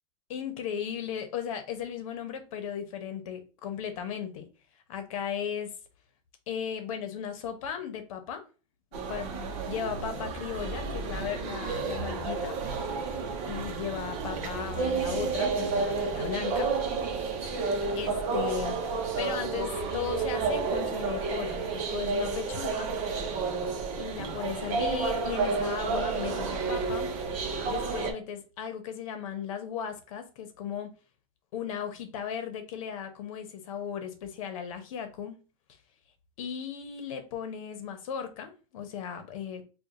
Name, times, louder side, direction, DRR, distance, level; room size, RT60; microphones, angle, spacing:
voice 1, 0.3-4.5 4.9-5.7 6.5-8.4 9.1-12.6 12.8-13.0 13.4-16.8 17.9-22.9 24.0-27.1 27.7-30.9 31.5-35.4 36.4-39.6, left 8 dB, 70° left, 0.9 m, -36 dB
sound 1, 8.9-28.1, right 4 dB, 35° right, 0.8 m, -31 dB
4.5 x 2.3 x 2.5 m
supercardioid pair, 170°, 18 cm